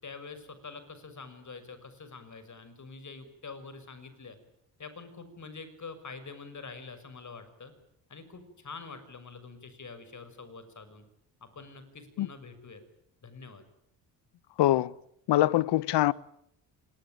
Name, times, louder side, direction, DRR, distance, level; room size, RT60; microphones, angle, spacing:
voice 1, 0.0-4.4 4.8-7.7 8.1-11.0 11.4-12.8 13.2-13.6, left 4 dB, 40° left, 6.3 m, -46 dB
voice 2, 14.6-14.9 15.3-16.1, left 14 dB, 65° left, 1.0 m, -23 dB
25.5 x 21.5 x 9.2 m
hypercardioid pair, 55°, 45 cm